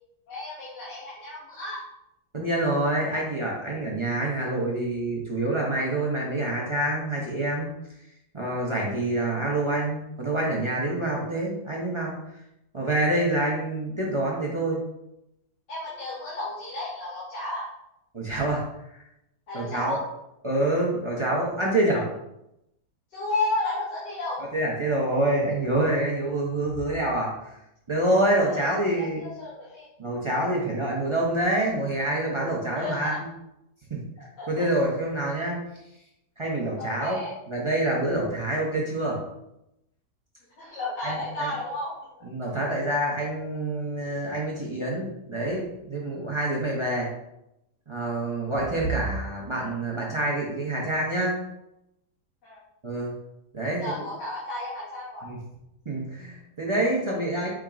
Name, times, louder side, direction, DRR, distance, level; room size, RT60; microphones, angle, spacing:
voice 1, 0.3-1.8 15.7-17.7 19.5-20.0 21.9-22.0 23.1-24.4 28.4-28.6 29.0-29.9 32.8-33.2 34.4-34.7 36.8-37.3 40.6-41.9 52.4-52.6 53.8-55.3, left 2 dB, 75° left, -8 dB, 1.7 m, -32 dB
voice 2, 2.3-7.7 8.3-12.1 12.7-14.8 18.1-18.6 19.5-20.0 20.4-22.1 24.5-27.3 27.9-29.2 30.0-33.3 33.9-34.0 34.5-35.6 36.4-37.2 37.5-39.2 41.0-41.5 42.2-47.1 47.9-51.4 52.8-53.1 53.5-53.8 55.2-55.4 55.9-57.5, right 1 dB, 45° right, -4 dB, 0.4 m, -26 dB
4.9 x 4.4 x 2.4 m, 0.85 s
omnidirectional pair, 1.8 m